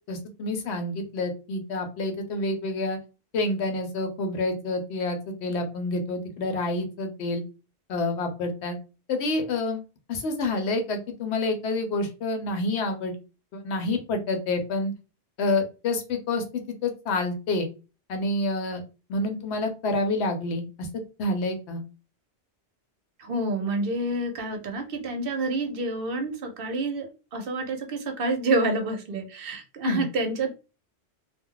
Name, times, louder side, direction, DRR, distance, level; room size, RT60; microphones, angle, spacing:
voice 1, 0.1-3.0 3.3-7.4 7.9-8.8 9.1-9.8 10.1-13.2 13.5-14.9 15.4-17.7 18.1-18.8 19.1-20.9 21.2-21.8 29.8-30.0, left 2 dB, 75° left, 6 dB, 0.9 m, -28 dB
voice 2, 23.2-30.5, right 2 dB, 60° right, 4 dB, 0.7 m, -28 dB
2.2 x 2.0 x 3.6 m, 0.32 s
omnidirectional pair, 1.2 m